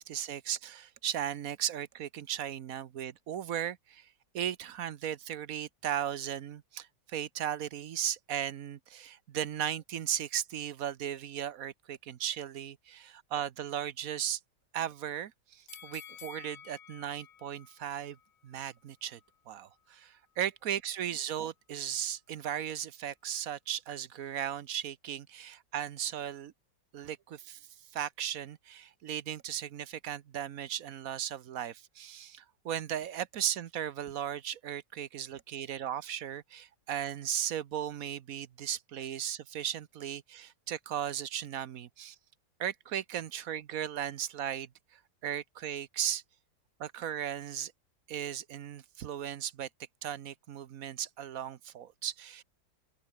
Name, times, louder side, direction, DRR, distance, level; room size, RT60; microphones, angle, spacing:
voice 1, 0.0-4.1 4.3-14.4 14.7-18.2 18.4-19.2 19.5-26.5 26.9-27.6 27.9-42.2 42.6-46.2 46.8-47.7 48.1-49.7 50.0-52.4, right 10 dB, 55° right, 1.1 m, -36 dB
sound 1, 15.7-18.8 19.2-19.3, left 9 dB, 50° left, 1.2 m, -52 dB
open air
omnidirectional pair, 2.1 m